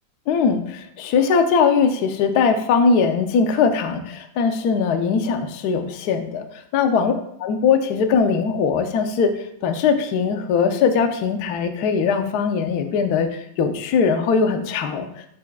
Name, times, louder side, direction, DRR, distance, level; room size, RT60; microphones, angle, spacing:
voice 1, 0.3-7.1 7.4-9.3 9.6-15.1, left 5 dB, 65° left, 6 dB, 1.0 m, -20 dB
11.5 x 4.8 x 2.3 m, 0.76 s
omnidirectional pair, 2.2 m